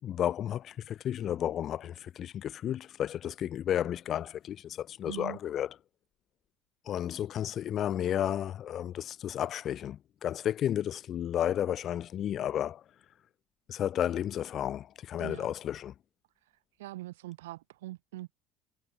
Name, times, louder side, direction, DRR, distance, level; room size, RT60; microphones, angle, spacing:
voice 1, 0.0-5.7 6.8-12.8 13.7-15.9, left 10 dB, 50° left, 5.1 m, -32 dB
voice 2, 5.1-5.4 15.2-15.5 16.8-18.3, right 17 dB, 90° right, 2.8 m, -42 dB
hypercardioid pair, 75°, 0 cm